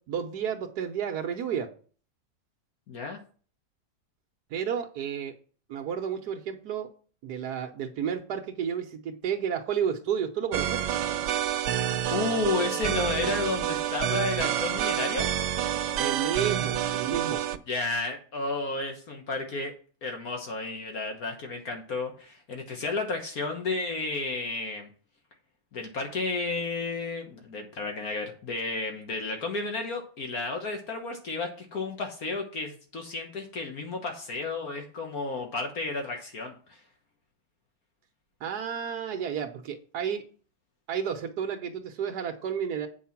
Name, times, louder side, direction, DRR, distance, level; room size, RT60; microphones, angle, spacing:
voice 1, 0.1-1.7 4.5-5.3 5.7-6.9 7.2-10.8 15.9-17.4 38.4-40.2 40.9-42.9, right 8 dB, 75° right, 3 dB, 1.4 m, -31 dB
voice 2, 2.9-3.2 12.1-15.3 17.7-19.7 20.0-24.9 25.7-36.8, left 3 dB, 60° left, 3 dB, 1.7 m, -32 dB
sound 1, 10.5-17.6, right 10 dB, 90° right, 1.3 m, -28 dB
8.5 x 4.7 x 5.8 m, 0.40 s
omnidirectional pair, 1.8 m